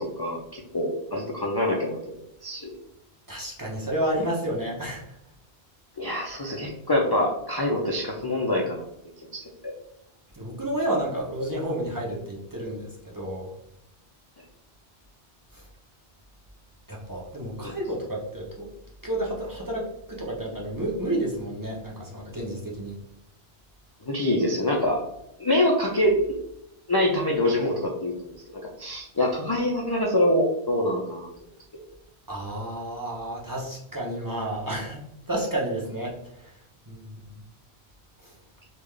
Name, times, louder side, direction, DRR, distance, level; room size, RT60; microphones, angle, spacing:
voice 1, 0.0-2.2 2.4-2.7 6.0-8.8 9.3-9.7 17.6-17.7 24.1-25.0 25.4-26.4 26.9-31.3, left 1 dB, 40° left, -1 dB, 0.3 m, -25 dB
voice 2, 3.3-5.1 10.3-13.5 15.5-15.6 16.9-18.7 19.0-23.0 32.3-35.0 35.3-36.5 36.9-37.4 38.2-38.3, right 1 dB, 20° right, -4 dB, 0.6 m, -31 dB
3.7 x 2.4 x 3.2 m, 0.83 s
omnidirectional pair, 1.1 m